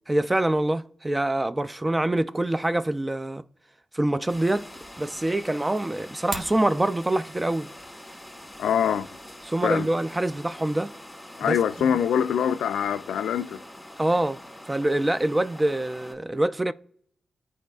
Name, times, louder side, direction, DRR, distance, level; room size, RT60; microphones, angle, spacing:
voice 1, 0.1-3.4 3.9-4.7 5.0-7.7 9.4-10.9 11.4-11.6 14.0-14.4 14.7-16.7, right 1 dB, 20° right, 0.3 m, -25 dB
sound 1, 4.3-16.2, left 1 dB, 10° left, 1.7 m, -45 dB
sound 2, 6.1-6.6, right 3 dB, 65° right, 1.1 m, -36 dB
voice 2, 8.6-9.1 9.6-9.9 11.4-13.6, left 8 dB, 90° left, 0.3 m, -24 dB
13.5 x 4.7 x 2.3 m
cardioid pair, 55°, 0 cm